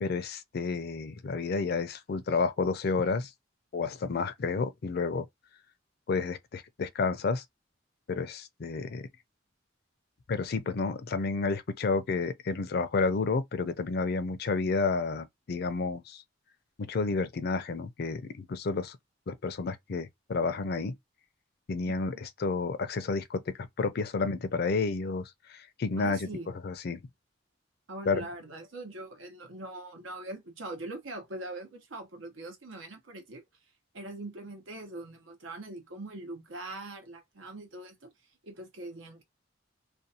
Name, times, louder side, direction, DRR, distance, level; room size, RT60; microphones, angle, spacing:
voice 1, 0.0-3.3 3.7-5.3 6.1-7.4 8.1-9.1 10.3-16.2 16.8-19.0 19.3-20.9 21.7-26.3 26.6-27.0 28.1-28.3, left 4 dB, 55° left, 0.4 m, -30 dB
voice 2, 26.0-26.6 27.9-33.4 33.9-38.1 38.4-39.2, right 2 dB, 90° right, 0.9 m, -42 dB
2.5 x 2.2 x 2.7 m
head